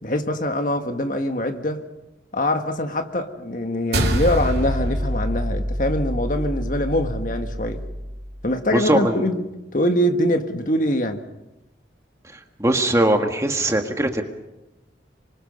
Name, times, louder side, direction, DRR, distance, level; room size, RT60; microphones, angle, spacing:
voice 1, 0.0-1.8 2.3-7.8 8.4-9.4 9.7-11.2, left 1 dB, 45° left, 1.6 m, -23 dB
sound 1, 3.9-8.5, equal, 65° right, 2.5 m, -26 dB
voice 2, 8.7-9.3 12.2-14.2, right 1 dB, 15° right, 1.7 m, -21 dB
26.5 x 24.5 x 5.5 m
head